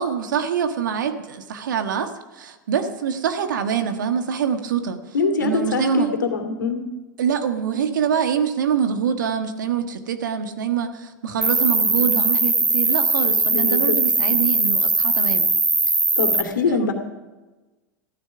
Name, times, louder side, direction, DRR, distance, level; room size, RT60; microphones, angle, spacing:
voice 1, 0.0-5.0 5.4-6.1 7.2-15.5 16.7-16.9, right 7 dB, 75° right, 8 dB, 1.5 m, -25 dB
voice 2, 5.1-6.8 13.5-14.0 16.2-16.9, left 4 dB, 80° left, 4 dB, 2.6 m, -23 dB
Cricket, 11.4-16.4, right 3 dB, 10° right, 1.4 m, -20 dB
14.5 x 13.5 x 6.0 m, 1.1 s
hypercardioid pair, 90°, 10 cm